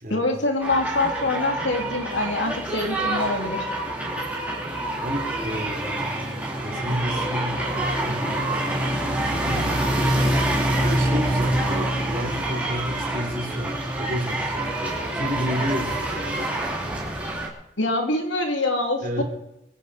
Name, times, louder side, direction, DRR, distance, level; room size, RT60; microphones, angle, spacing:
voice 1, 0.1-3.6 17.8-19.2, left 2 dB, 90° left, 3 dB, 3.0 m, -25 dB
sound 1, 0.6-17.5, right 1 dB, 10° right, 3.1 m, -26 dB
voice 2, 5.0-16.5 19.0-19.2, equal, 50° right, 2 dB, 3.8 m, -32 dB
23.0 x 9.4 x 5.1 m, 0.87 s
head